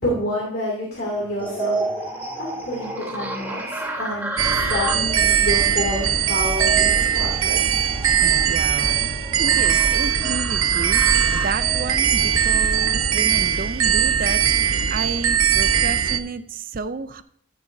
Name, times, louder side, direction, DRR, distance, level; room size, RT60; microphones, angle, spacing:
voice 1, 0.0-1.8 2.4-3.6 4.0-4.3 4.7-7.8, left 1 dB, 50° left, -5 dB, 2.5 m, -28 dB
sound 1, 0.9-7.0, left 1 dB, 75° left, 3.5 m, -46 dB
sound 2, 1.4-13.1, right 2 dB, 10° right, 1.2 m, -32 dB
sound 3, 4.4-16.2, right 8 dB, 85° right, 0.8 m, -20 dB
voice 2, 8.2-9.0 9.4-17.2, right 4 dB, 40° right, 13 dB, 0.4 m, -31 dB
14.0 x 6.8 x 2.7 m, 0.63 s
head